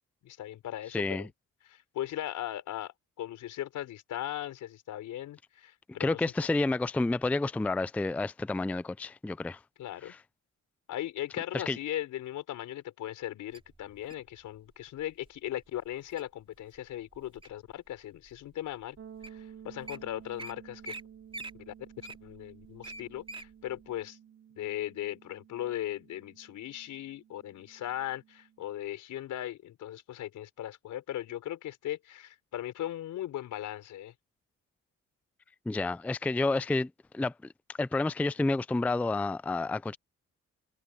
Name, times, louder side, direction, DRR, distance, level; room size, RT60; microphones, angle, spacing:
voice 1, 0.2-1.3 1.6-6.2 9.8-10.1 10.9-19.0 19.2-20.9 21.7-21.8 22.2-24.2 24.5-34.1, left 12 dB, 80° left, 4.7 m, -38 dB
voice 2, 0.9-1.3 6.0-9.6 10.1-10.2 11.5-11.8 35.7-37.3 37.7-40.0, left 2 dB, 5° left, 0.4 m, -30 dB
Wild animals, 13.5-14.3 15.0-15.3 15.8-16.2 16.7-17.7 18.3-18.4 19.0-19.1 19.2-19.4 19.7-20.0 20.4-20.5 20.8-21.0 21.3-23.5 23.9-24.0, right 2 dB, 15° right, 3.9 m, -43 dB
sound 1, 19.0-28.7, right 9 dB, 50° right, 4.0 m, -53 dB
cardioid pair, 90°, 30 cm